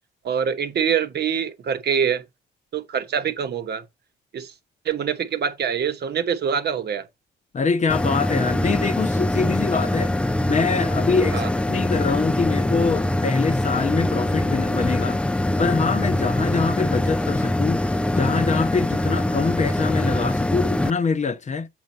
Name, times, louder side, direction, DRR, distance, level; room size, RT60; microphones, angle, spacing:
voice 1, 0.2-2.2 2.7-3.8 4.3-4.5 4.8-7.0 11.3-11.5, right 7 dB, 55° right, 1.0 m, -24 dB
voice 2, 7.5-10.1 10.5-15.2 15.6-21.7, left 5 dB, 35° left, 0.8 m, -24 dB
sound 1, 7.9-20.9, left 1 dB, 5° left, 0.4 m, -23 dB
7.9 x 4.4 x 4.2 m
cardioid pair, 90°, 20 cm